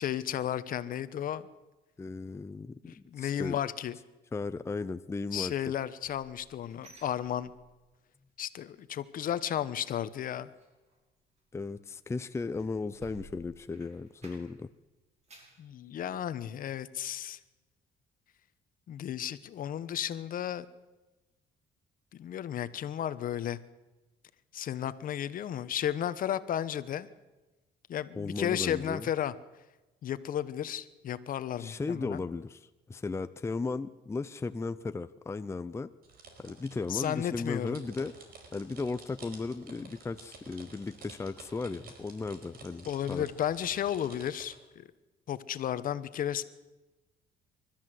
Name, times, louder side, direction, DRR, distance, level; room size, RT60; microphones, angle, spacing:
voice 1, 0.0-1.5 2.8-3.9 5.3-7.5 8.4-10.5 15.6-17.4 18.9-20.7 22.1-23.6 24.5-27.1 27.9-29.3 30.0-32.2 36.9-37.8 42.8-44.9 45.3-46.4, left 10 dB, 55° left, 13 dB, 1.1 m, -33 dB
voice 2, 2.0-2.8 3.2-3.6 4.3-5.5 11.5-14.7 28.2-29.1 31.6-35.9 36.4-38.1 38.5-43.3, left 3 dB, 15° left, 11 dB, 0.6 m, -36 dB
sound 1, 5.8-8.0 8.3-8.6 8.9-14.7 15.0-15.6 16.1-16.2 16.7-16.8, right 1 dB, 40° right, 5.8 m, -57 dB
sound 2, 36.0-44.6, right 4 dB, 65° right, 4.7 m, -52 dB
27.5 x 13.0 x 7.8 m, 1.1 s
cardioid pair, 110°, 17 cm